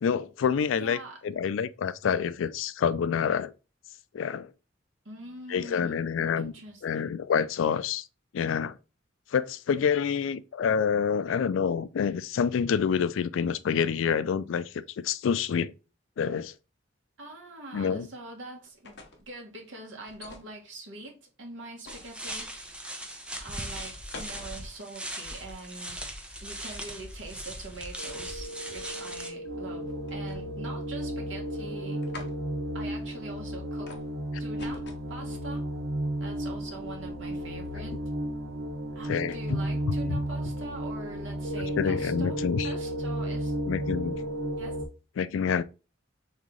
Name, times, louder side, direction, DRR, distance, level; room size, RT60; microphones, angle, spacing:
voice 1, 0.0-3.5 4.1-4.5 5.5-6.5 6.8-8.1 8.3-8.7 9.3-15.7 16.2-16.5 17.7-18.1 39.1-39.6 41.8-42.7 43.7-44.3 45.2-45.6, left 7 dB, 85° left, 0.4 m, -27 dB
voice 2, 0.8-1.2 5.0-6.0 6.4-7.1 17.2-22.8 23.4-26.0 26.4-32.0 32.7-33.9 34.4-35.7 36.2-38.0 38.9-43.5 44.6-44.8, right 2 dB, 75° right, 1.4 m, -43 dB
sound 1, 18.6-19.3 20.1-20.5 21.8-22.6 23.7-24.5 30.1-30.7 31.0-31.5 32.0-32.3 33.9-34.1 34.6-35.1, left 2 dB, 60° left, 0.9 m, -45 dB
sound 2, 21.9-29.3, right 1 dB, 5° right, 0.7 m, -39 dB
sound 3, 28.0-44.9, right 1 dB, 60° right, 0.8 m, -33 dB
3.6 x 3.2 x 3.7 m
head